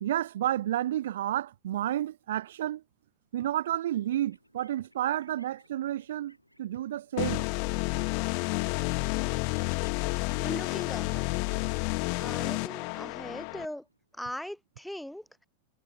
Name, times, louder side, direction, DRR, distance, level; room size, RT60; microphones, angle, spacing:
voice 1, 0.0-2.8 3.3-7.5, right 12 dB, 60° right, 0.5 m, -31 dB
sound 1, 3.8-14.2, equal, 90° left, 7.5 m, -62 dB
sound 2, 7.2-13.6, left 40 dB or more, 45° left, 0.5 m, -30 dB
voice 2, 10.4-11.3 11.8-13.8 14.1-15.5, left 1 dB, ahead, 1.0 m, -40 dB
figure-of-eight pair, 90°, 0 cm